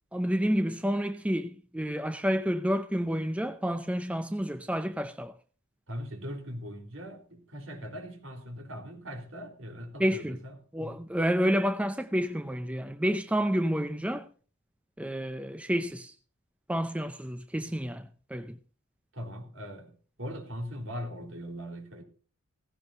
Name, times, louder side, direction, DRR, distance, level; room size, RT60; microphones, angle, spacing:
voice 1, 0.1-5.4 10.0-10.4 10.7-14.3 15.0-16.1 16.7-18.6, equal, 5° right, 0.6 m, -29 dB
voice 2, 5.9-11.0 19.1-22.0, equal, 60° right, 3.9 m, -40 dB
17.0 x 16.0 x 2.7 m
head